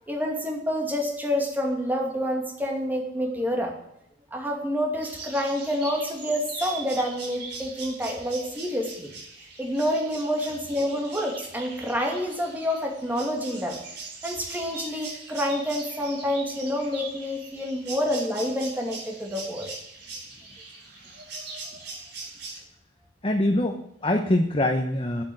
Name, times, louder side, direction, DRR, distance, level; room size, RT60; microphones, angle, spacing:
voice 1, 0.1-3.7 4.3-9.1 9.6-13.8 14.2-19.7, equal, 10° right, 1 dB, 2.5 m, -28 dB
sound 1, 5.0-22.6, right 3 dB, 60° right, 4.8 m, -41 dB
voice 2, 23.2-25.2, left 1 dB, 30° left, 4 dB, 1.0 m, -24 dB
10.0 x 8.3 x 9.4 m, 0.77 s
head